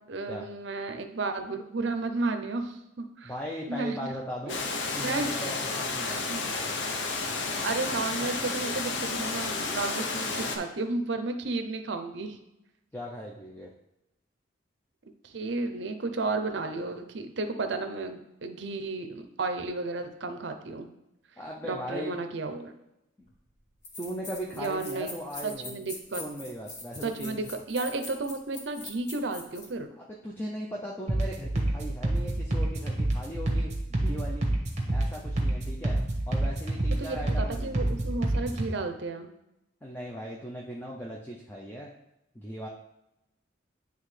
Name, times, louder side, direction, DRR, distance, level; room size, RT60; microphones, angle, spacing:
voice 1, 0.1-3.3 3.7-4.0 5.0-5.3 6.3-6.5 7.6-12.4 15.2-20.9 21.6-22.7 24.5-25.1 25.4-26.2 27.0-29.9 37.0-39.3, right 3 dB, 65° right, 7 dB, 0.6 m, -33 dB
voice 2, 3.2-4.6 4.9-6.2 12.9-13.7 21.4-22.2 23.2-23.3 24.0-25.8 26.2-27.4 30.0-34.5 34.9-36.0 36.3-37.9 39.8-41.9 42.3-42.7, equal, 10° left, -2 dB, 0.5 m, -38 dB
Water, 4.5-10.6, left 3 dB, 65° left, 0.7 m, -31 dB
sound 1, 23.3-23.4 23.8-29.7, left 2 dB, 40° left, 1.3 m, -42 dB
sound 2, 31.1-38.7, right 1 dB, 35° right, 1.2 m, -28 dB
9.4 x 3.4 x 3.3 m, 0.88 s
head